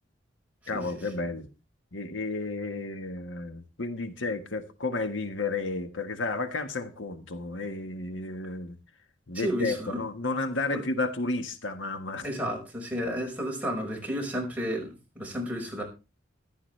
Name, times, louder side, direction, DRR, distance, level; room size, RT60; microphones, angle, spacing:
voice 1, 0.7-1.5 1.9-8.8 9.3-12.3, left 3 dB, 85° left, 1.5 m, -32 dB
voice 2, 9.3-10.0 10.7-10.8 12.2-15.8, equal, 10° right, 5.1 m, -32 dB
14.5 x 12.5 x 3.3 m
head